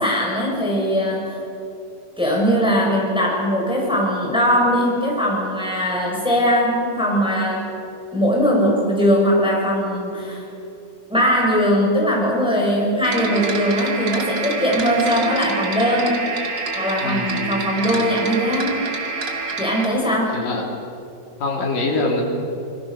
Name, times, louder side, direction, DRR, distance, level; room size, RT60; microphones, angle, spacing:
voice 1, 0.0-1.4 2.2-7.7 8.1-10.5 11.1-16.2 16.7-18.7 19.6-20.4, equal, ahead, -2 dB, 5.9 m, -20 dB
sound 1, 13.0-19.9, right 4 dB, 40° right, 1.7 m, -27 dB
voice 2, 20.3-20.6 21.4-22.2, left 2 dB, 50° left, 0 dB, 4.8 m, -23 dB
28.5 x 21.5 x 6.7 m, 2.7 s
omnidirectional pair, 5.2 m